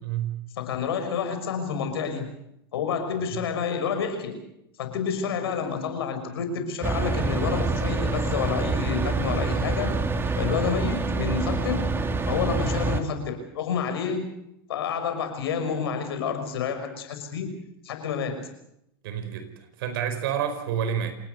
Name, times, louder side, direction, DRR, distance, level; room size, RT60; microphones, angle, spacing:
voice 1, 0.0-0.4 19.0-19.5 19.8-21.1, right 9 dB, 70° right, 10 dB, 4.8 m, -28 dB
voice 2, 0.6-2.3 2.7-4.4 4.8-10.0 10.4-11.9 12.3-14.3 14.7-17.5 17.8-18.5, left 6 dB, 80° left, 7 dB, 5.9 m, -29 dB
sound 1, 6.8-13.0, right 3 dB, 20° right, 2.4 m, -26 dB
27.0 x 19.5 x 6.7 m, 0.80 s
hypercardioid pair, 105°, 13 cm